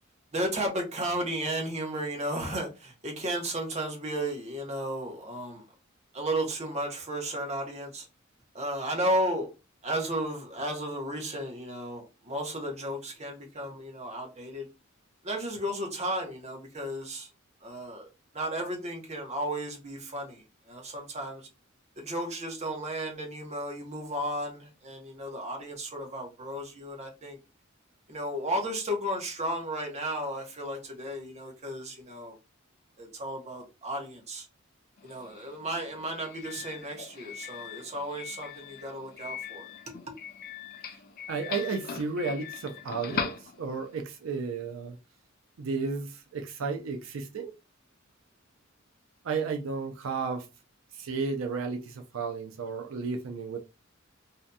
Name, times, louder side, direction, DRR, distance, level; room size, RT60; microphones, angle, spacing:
voice 1, 0.3-5.6 6.1-8.1 8.5-9.5 9.8-14.7 15.2-17.3 17.6-18.1 18.3-20.4 20.7-21.4 22.0-27.4 28.1-32.3 33.0-34.4 35.0-39.7, right 1 dB, 35° right, 0.8 m, -34 dB
Doorbell, 35.0-44.0, left 7 dB, 50° left, 0.4 m, -40 dB
voice 2, 41.3-45.0 45.6-47.6 49.2-50.5 50.9-53.6, right 4 dB, 80° right, 0.4 m, -33 dB
2.7 x 2.5 x 2.2 m
head